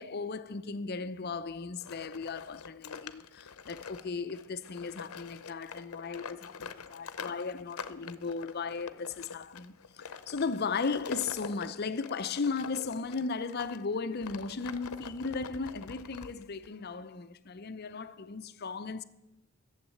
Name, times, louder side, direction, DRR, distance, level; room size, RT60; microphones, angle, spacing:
voice 1, 0.0-19.0, left 4 dB, 45° left, 0.6 m, -36 dB
sound 1, 1.8-13.8 14.2-16.7, left 6 dB, 85° left, 0.7 m, -45 dB
12.5 x 7.3 x 8.6 m
head